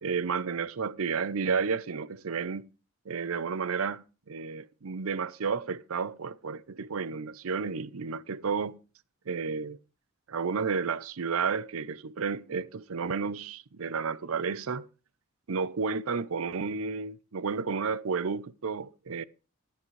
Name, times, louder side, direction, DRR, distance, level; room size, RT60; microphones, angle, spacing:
voice 1, 0.0-2.7 3.1-8.8 9.3-9.8 10.3-14.9 15.5-19.2, right 5 dB, 75° right, 0.6 m, -32 dB
14.5 x 10.5 x 3.2 m
head